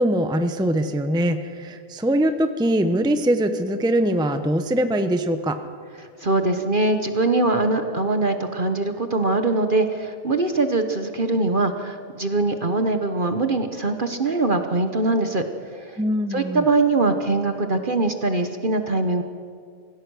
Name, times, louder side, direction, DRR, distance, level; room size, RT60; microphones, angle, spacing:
voice 1, 0.0-5.6 16.0-16.6, right 1 dB, 5° right, 8 dB, 0.8 m, -22 dB
voice 2, 6.2-15.4 15.7-16.0 16.3-19.2, right 2 dB, 40° right, 7 dB, 1.2 m, -22 dB
25.0 x 16.5 x 6.3 m, 2.2 s
omnidirectional pair, 1.4 m